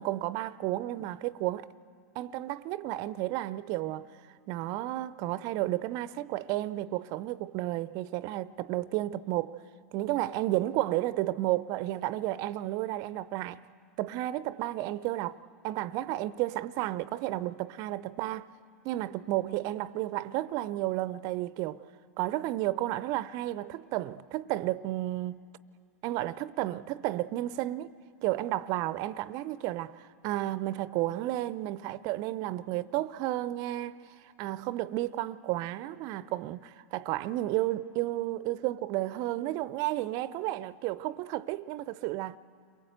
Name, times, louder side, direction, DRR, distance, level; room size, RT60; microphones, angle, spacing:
voice 1, 0.0-1.7 2.1-4.1 4.5-9.6 9.9-13.6 14.0-15.4 15.6-18.5 18.8-21.8 22.2-25.4 26.0-30.0 30.2-34.0 34.4-42.4, right 16 dB, 45° right, 0.6 m, -32 dB
29.5 x 22.5 x 8.0 m
hypercardioid pair, 95°, 8 cm